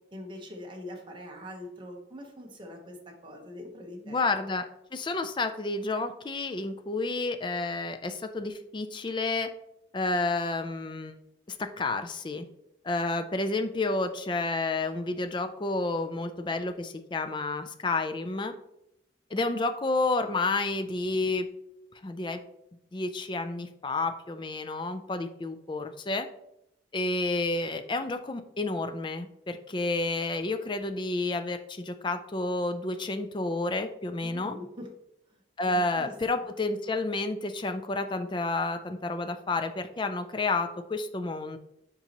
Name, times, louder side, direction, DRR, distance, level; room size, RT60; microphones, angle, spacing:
voice 1, 0.1-4.2 34.2-34.9 35.3-35.4 35.7-36.1, left 1 dB, 25° right, 1 dB, 1.0 m, -43 dB
voice 2, 4.1-9.5 9.9-11.2 11.5-12.4 12.8-18.5 19.3-21.5 22.0-22.4 22.9-26.3 26.9-34.6 35.6-41.6, left 3 dB, 25° left, 8 dB, 0.4 m, -30 dB
7.2 x 5.3 x 2.9 m, 0.82 s
head